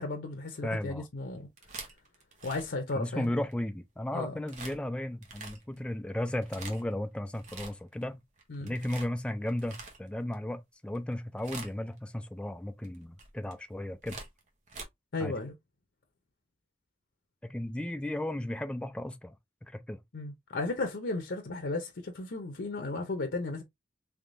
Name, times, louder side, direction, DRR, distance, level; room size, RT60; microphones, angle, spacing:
voice 1, 0.0-1.5 2.4-3.3 4.1-4.3 8.5-8.7 15.1-15.5 20.1-23.6, left 3 dB, 90° left, 0.7 m, -35 dB
voice 2, 0.6-1.1 2.9-8.2 8.6-14.2 15.2-15.3 17.4-19.3 19.6-20.0, left 1 dB, 5° left, 0.3 m, -35 dB
sound 1, 1.4-3.5 4.5-4.8 5.2-5.8 6.3-6.9 7.3-8.0 8.4-10.3 10.9-11.1 11.4-12.0 12.8-14.8, right 4 dB, 45° right, 0.9 m, -45 dB
3.5 x 3.4 x 2.5 m
head